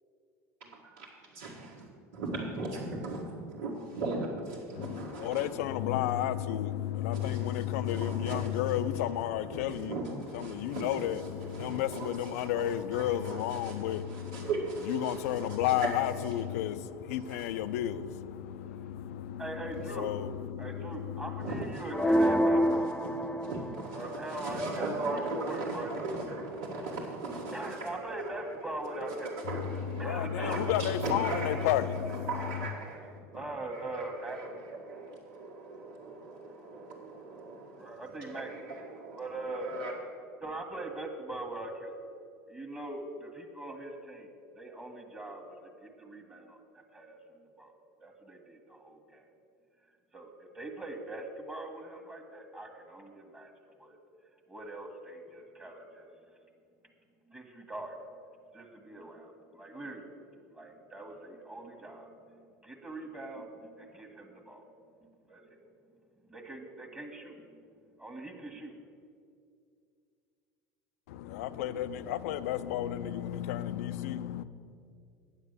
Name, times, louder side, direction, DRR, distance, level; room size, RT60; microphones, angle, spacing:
voice 1, 1.3-5.5 7.1-8.8 9.5-16.3 17.2-17.5 19.7-19.8 21.4-33.4 33.7-39.9, right 3 dB, 85° right, 1.8 m, -39 dB
voice 2, 4.8-9.9 10.3-14.5 14.9-21.6 22.7-22.9 29.5-32.4 71.1-74.4, left 11 dB, 80° left, 0.5 m, -32 dB
voice 3, 19.4-20.1 20.6-22.9 23.9-24.9 25.5-26.0 27.5-29.3 30.0-30.6 33.3-34.4 37.8-38.5 39.2-39.7 40.4-41.9 42.5-44.3 44.5-45.4 45.8-46.6 46.9-47.2 47.6-47.7 48.0-49.2 50.1-53.5 53.8-54.0 54.5-56.1 57.3-57.9 58.5-60.0 60.5-62.1 62.6-63.5 63.8-64.6 65.3-65.4 66.3-67.3 68.0-68.7, right 2 dB, 15° right, 1.5 m, -41 dB
sound 1, 21.9-24.0, equal, 10° left, 0.6 m, -27 dB
9.3 x 7.4 x 6.6 m
hypercardioid pair, 90°, 8 cm